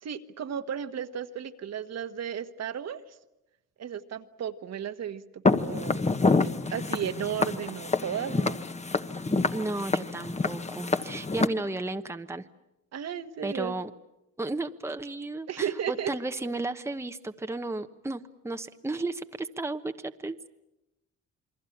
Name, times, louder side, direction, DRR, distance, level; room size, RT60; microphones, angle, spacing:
voice 1, 0.0-3.2 3.8-6.0 6.4-8.6 12.9-13.7 15.5-16.1, right 8 dB, 60° right, 9 dB, 1.5 m, -34 dB
Walk footsteps, 5.5-11.5, left 3 dB, 20° left, 1.3 m, -27 dB
voice 2, 9.1-12.5 13.4-13.9 14.4-20.5, right 2 dB, 10° right, 8 dB, 1.0 m, -34 dB
28.5 x 22.0 x 8.6 m, 0.92 s
cardioid pair, 90°, 30 cm